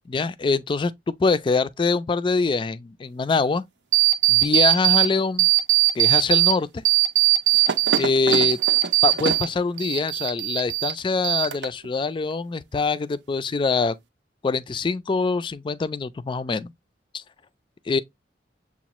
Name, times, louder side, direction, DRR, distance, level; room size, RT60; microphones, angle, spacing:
voice 1, 0.1-3.6 4.3-5.5 6.0-6.8 7.5-7.6 8.0-8.6 9.0-13.9 14.4-16.7 17.1-17.2 17.9-18.0, left 4 dB, 30° left, 0.3 m, -24 dB
sound 1, 3.9-5.1 5.4-6.5 6.9-9.5 9.8-10.9 11.2-11.9, right 15 dB, 85° right, 0.6 m, -19 dB
7.0 x 2.4 x 2.9 m
head